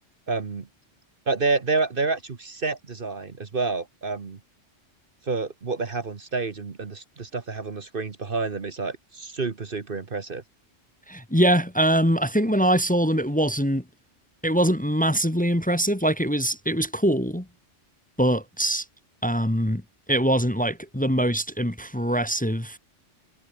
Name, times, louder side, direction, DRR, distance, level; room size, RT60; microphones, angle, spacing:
voice 1, 0.3-0.7 1.3-4.4 5.2-10.4, right 3 dB, 50° right, 1.5 m, -28 dB
voice 2, 11.1-13.8 14.4-17.4 18.2-18.8 19.2-19.8 20.1-22.8, equal, 5° left, 1.5 m, -23 dB
omnidirectional pair, 1.2 m